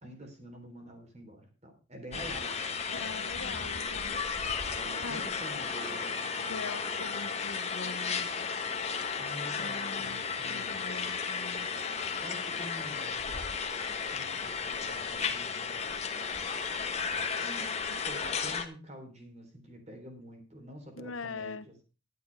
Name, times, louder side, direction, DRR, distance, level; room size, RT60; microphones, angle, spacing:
voice 1, 0.0-2.8 4.8-6.7 9.2-10.8 12.2-13.2 14.1-15.8 17.4-21.8, equal, 35° right, 4 dB, 3.7 m, -47 dB
sound 1, 2.1-18.7, left 5 dB, 30° left, 1.3 m, -34 dB
voice 2, 2.9-4.2 5.0-5.3 6.5-8.3 9.5-11.7 20.9-21.7, left 3 dB, 85° left, 14 dB, 1.0 m, -42 dB
12.0 x 9.3 x 4.7 m, 0.33 s
head